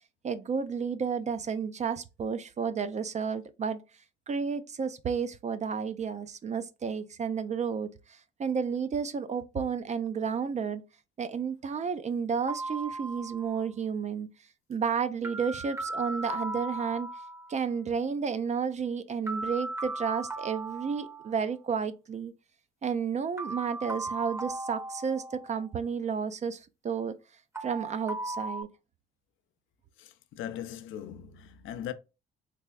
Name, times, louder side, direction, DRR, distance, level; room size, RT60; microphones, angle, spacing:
voice 1, 0.2-3.8 4.3-10.8 11.2-14.3 14.7-17.1 17.5-22.3 22.8-27.2 27.6-28.7, right 6 dB, 35° right, 0.4 m, -32 dB
sound 1, 12.5-13.6 15.2-17.6 19.3-21.6 23.4-25.7 27.5-28.6, right 2 dB, 15° right, 0.7 m, -37 dB
voice 2, 30.0-31.9, left 10 dB, 80° left, 0.5 m, -39 dB
3.3 x 3.3 x 2.2 m
cardioid pair, 90°, 20 cm